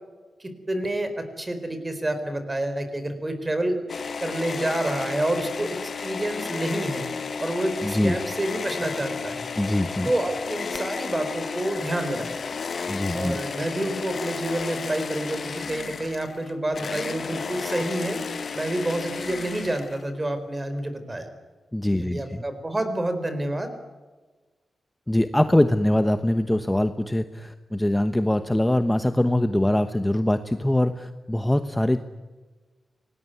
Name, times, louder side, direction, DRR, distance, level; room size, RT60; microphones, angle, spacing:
voice 1, 0.4-3.8 4.2-5.8 6.0-7.0 7.4-9.5 10.1-12.3 13.1-18.2 18.5-21.3 22.0-23.7, right 1 dB, 20° right, 9 dB, 4.5 m, -28 dB
sound 1, 3.9-20.2, left 5 dB, 55° left, 1.0 m, -33 dB
voice 2, 7.8-8.2 9.6-10.1 12.9-13.4 21.7-22.4 25.1-32.0, left 1 dB, 10° left, 9 dB, 1.0 m, -23 dB
27.5 x 19.5 x 9.4 m, 1.3 s
wide cardioid pair, 125°, 0 cm